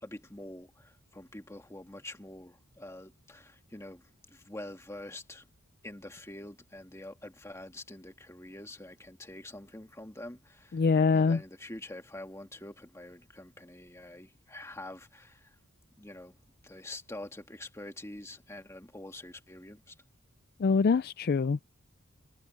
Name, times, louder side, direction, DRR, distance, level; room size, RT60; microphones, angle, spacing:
voice 1, 0.0-5.5 5.8-10.8 11.1-15.6 16.0-16.4 16.6-20.0, left 1 dB, 15° left, 1.7 m, -46 dB
voice 2, 10.7-11.4 20.6-21.6, left 4 dB, 45° left, 0.4 m, -24 dB
head